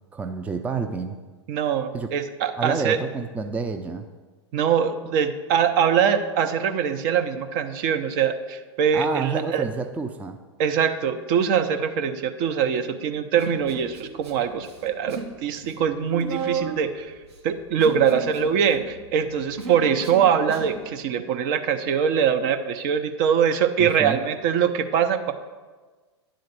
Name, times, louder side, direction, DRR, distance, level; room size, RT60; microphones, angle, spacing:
voice 1, 0.1-1.2 1.9-2.1 2.6-4.1 8.9-10.4 23.8-24.2, right 5 dB, 10° right, 6 dB, 0.4 m, -28 dB
voice 2, 1.5-3.0 4.5-9.6 10.6-17.1 17.4-25.3, right 7 dB, 45° right, 8 dB, 0.7 m, -23 dB
Human voice, 13.4-14.3 14.6-15.3 15.6-20.8, right 6 dB, 70° right, 1.4 m, -34 dB
10.0 x 3.9 x 6.7 m, 1.3 s
figure-of-eight pair, 100°, 15 cm